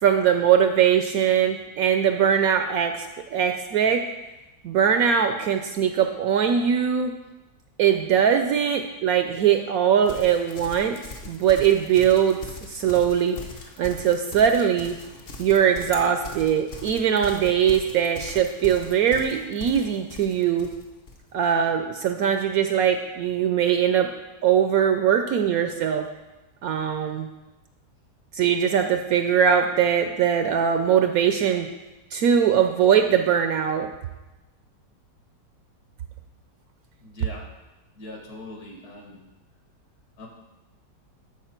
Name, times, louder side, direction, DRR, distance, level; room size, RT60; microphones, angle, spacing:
voice 1, 0.0-4.0 4.6-7.1 7.8-11.0 11.2-12.4 12.7-13.4 13.8-15.0 15.4-20.7 21.3-24.1 24.4-26.1 26.6-27.3 28.3-31.7 32.1-33.9, right 8 dB, 70° right, 6 dB, 0.9 m, -21 dB
Livestock farm animals working animals, 10.0-21.2, left 3 dB, 45° left, 0.8 m, -41 dB
voice 2, 37.0-37.5 38.0-39.2 40.2-40.3, left 2 dB, 60° left, 1 dB, 2.0 m, -41 dB
12.5 x 4.9 x 4.4 m, 1.0 s
omnidirectional pair, 1.8 m